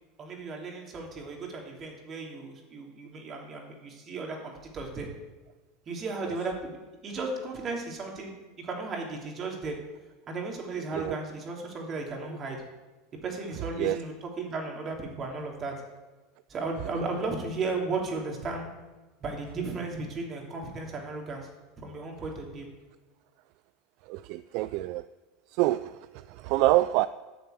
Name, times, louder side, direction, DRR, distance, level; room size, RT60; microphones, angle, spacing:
voice 1, 0.2-5.1 5.9-9.8 10.3-12.6 13.2-15.7 16.5-18.7 19.2-21.5 21.8-22.7, right 3 dB, 35° right, 3.1 m, -35 dB
voice 2, 24.1-25.1 25.5-27.1, right 17 dB, 60° right, 0.3 m, -26 dB
9.5 x 6.7 x 8.2 m
hypercardioid pair, 105°, 0 cm